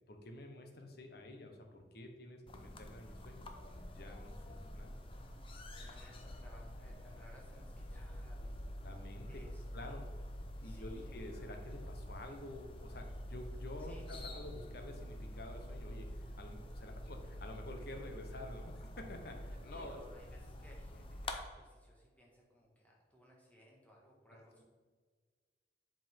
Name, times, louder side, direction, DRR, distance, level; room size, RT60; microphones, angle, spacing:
voice 1, 0.1-5.0 8.8-9.3 9.7-10.0 10.6-20.0, left 1 dB, 60° left, 4 dB, 0.9 m, -49 dB
sound 1, 2.5-21.4, left 1 dB, 30° left, 0.6 m, -47 dB
voice 2, 5.7-8.7 9.3-10.1 10.6-11.1 13.8-14.5 19.7-24.6, equal, 10° left, -3 dB, 1.4 m, -61 dB
7.5 x 5.1 x 3.6 m, 1.5 s
head